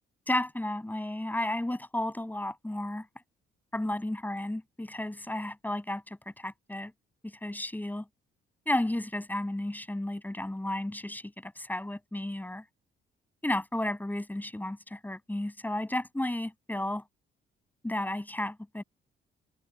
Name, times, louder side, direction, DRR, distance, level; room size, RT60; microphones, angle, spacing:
voice 1, 0.3-3.1 3.7-6.9 7.2-8.1 8.7-12.6 13.4-17.0 17.8-18.8, left 1 dB, 10° left, 7.2 m, -33 dB
cardioid pair, 90°, 20 cm